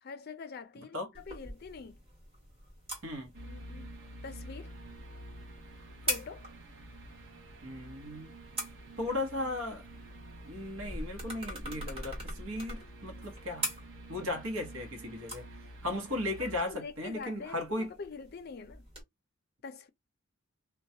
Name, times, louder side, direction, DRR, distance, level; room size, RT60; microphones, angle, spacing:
voice 1, 0.0-2.0 3.4-3.9 4.2-4.8 6.0-6.5 16.4-18.9 19.6-19.9, left 5 dB, 50° left, 0.4 m, -45 dB
sound 1, 1.1-19.0, right 1 dB, 25° right, 1.0 m, -44 dB
sound 2, 3.3-16.6, right 1 dB, 60° right, 0.7 m, -49 dB
voice 2, 7.6-8.3 9.0-9.8 10.4-13.7 14.1-15.5 15.8-17.9, left 2 dB, 80° right, 1.0 m, -36 dB
2.3 x 2.2 x 2.7 m
head